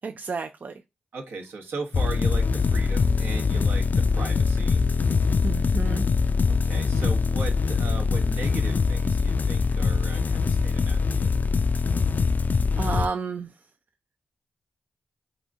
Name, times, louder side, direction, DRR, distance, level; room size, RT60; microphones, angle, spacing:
voice 1, 0.0-0.8 5.4-6.1 12.7-13.7, right 4 dB, 50° right, 0.4 m, -31 dB
voice 2, 1.1-4.8 6.5-11.4, right 3 dB, 75° right, 0.9 m, -37 dB
sound 1, 1.9-13.1, left 5 dB, 50° left, 0.4 m, -23 dB
2.9 x 2.6 x 3.4 m
supercardioid pair, 40°, 4 cm